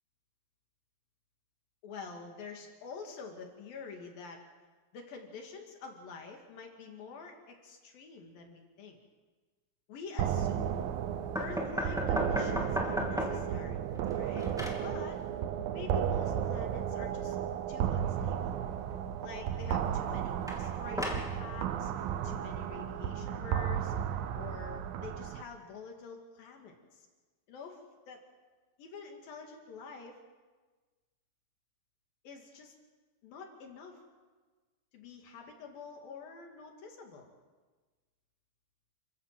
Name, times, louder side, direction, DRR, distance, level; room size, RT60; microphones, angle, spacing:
voice 1, 1.8-4.4 4.9-9.0 9.9-10.9 11.3-13.9 14.2-14.5 14.8-15.2 15.7-17.4 17.7-18.6 19.2-21.9 22.2-23.9 24.3-27.1 27.5-27.8 28.1-28.2 28.8-30.2 32.2-32.7 33.2-34.0 34.9-37.3, left 5 dB, 75° left, 2 dB, 4.0 m, -47 dB
sound 1, 10.2-25.4, right 9 dB, 80° right, 2.7 m, -34 dB
sound 2, 11.4-13.6 13.9-14.9 20.5-21.4, left 1 dB, ahead, 2.0 m, -35 dB
29.0 x 14.5 x 7.5 m, 1.3 s
omnidirectional pair, 4.1 m